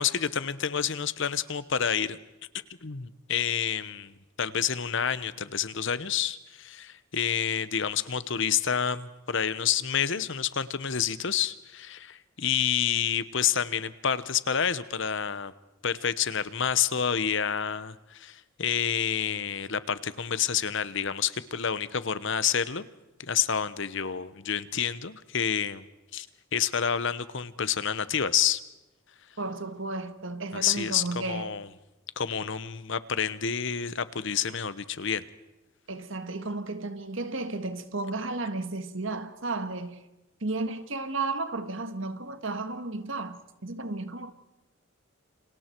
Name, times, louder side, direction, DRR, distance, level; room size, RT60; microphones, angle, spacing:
voice 1, 0.0-2.2 2.8-4.1 4.4-15.5 15.8-22.9 23.2-25.8 26.1-26.3 26.5-28.6 30.5-31.7 32.2-35.2, left 8 dB, 60° left, 1.0 m, -28 dB
voice 2, 29.4-31.6 35.9-40.0 40.4-44.3, right 3 dB, 60° right, 1.7 m, -33 dB
29.0 x 27.0 x 4.6 m
head